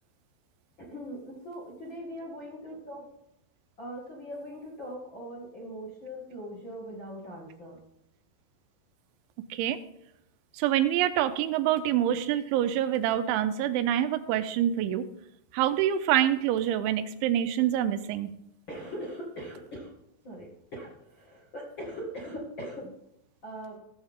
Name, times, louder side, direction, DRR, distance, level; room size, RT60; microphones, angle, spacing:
voice 1, 0.8-3.0 3.8-7.8 18.7-19.9 20.2-22.9 23.4-23.8, equal, 45° left, -4 dB, 1.7 m, -40 dB
voice 2, 10.5-15.1 15.5-18.3, right 11 dB, 90° right, 10 dB, 3.1 m, -26 dB
17.5 x 7.1 x 3.7 m, 0.79 s
omnidirectional pair, 5.3 m